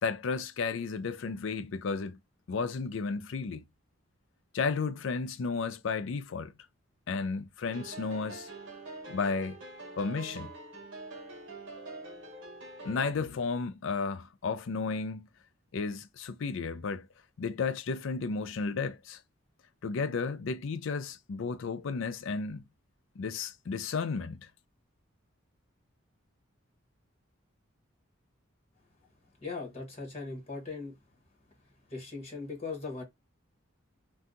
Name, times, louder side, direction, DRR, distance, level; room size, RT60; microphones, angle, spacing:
voice 1, 0.0-2.2 2.5-3.6 4.5-6.5 7.1-8.5 9.1-9.6 10.0-10.5 12.8-15.3 15.7-17.1 17.4-19.2 19.8-22.6 23.2-24.5, left 4 dB, 65° left, 0.4 m, -33 dB
sound 1, 7.6-13.1, right 2 dB, 65° right, 0.9 m, -45 dB
voice 2, 29.4-30.9 31.9-33.0, left 4 dB, 30° left, 1.2 m, -39 dB
2.7 x 2.3 x 3.6 m
head